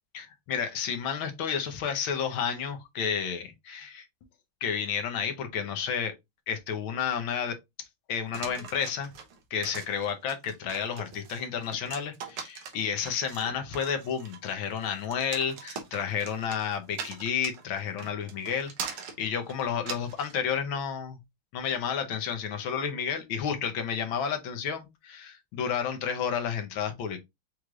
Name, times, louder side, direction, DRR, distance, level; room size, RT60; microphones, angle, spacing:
voice 1, 0.1-4.1 4.6-6.1 6.5-7.6 8.1-9.1 9.5-21.2 21.5-27.2, left 7 dB, 70° left, 1.6 m, -31 dB
sound 1, 8.3-20.4, right 6 dB, 90° right, 1.8 m, -41 dB
5.9 x 3.2 x 2.4 m
omnidirectional pair, 2.3 m